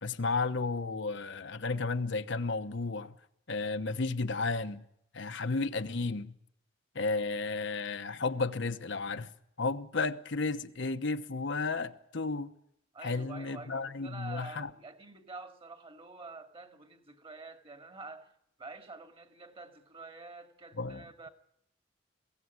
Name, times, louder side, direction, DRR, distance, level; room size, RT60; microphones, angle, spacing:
voice 1, 0.0-3.2 3.5-4.8 5.1-6.3 6.9-9.3 9.6-12.5 13.0-14.7 20.8-21.0, left 3 dB, 65° left, 1.0 m, -33 dB
voice 2, 12.9-18.3 18.6-21.3, right 3 dB, 30° right, 2.4 m, -47 dB
22.0 x 16.5 x 9.6 m
head